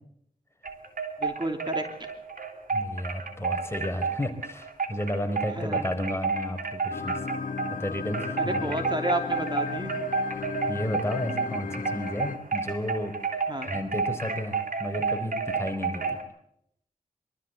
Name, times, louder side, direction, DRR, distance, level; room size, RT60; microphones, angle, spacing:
sound 1, 0.6-7.8 8.1-16.2, right 4 dB, 70° right, 3.5 m, -31 dB
voice 1, 1.2-1.8 5.6-5.9 8.5-10.0 13.5-13.7, right 1 dB, 30° right, 5 dB, 3.0 m, -31 dB
voice 2, 2.7-7.2 7.7-8.6 10.7-13.1 13.6-16.2, left 1 dB, 15° left, 6 dB, 4.2 m, -32 dB
sound 2, 6.9-12.4, left 6 dB, 65° left, 1.1 m, -35 dB
25.0 x 13.5 x 8.4 m, 0.72 s
cardioid pair, 45°, 15 cm